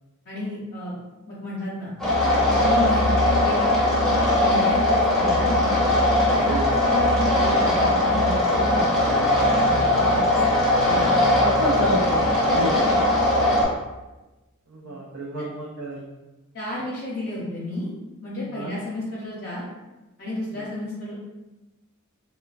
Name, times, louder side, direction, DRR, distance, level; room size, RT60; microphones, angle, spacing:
voice 1, 0.3-1.0 1.3-1.9 2.5-5.8 6.3-6.6 6.9-8.9 9.5-10.3 10.8-11.1 12.5-12.9 16.5-17.9 18.2-19.7 20.2-21.1, left 2 dB, 45° left, -8 dB, 0.6 m, -32 dB
sound 1, 2.0-13.6, left 1 dB, ahead, 0.6 m, -20 dB
voice 2, 11.4-12.9 14.7-16.1 18.5-18.7 20.5-20.7, right 1 dB, 65° right, -4 dB, 0.4 m, -29 dB
3.1 x 2.1 x 2.4 m, 1.1 s
head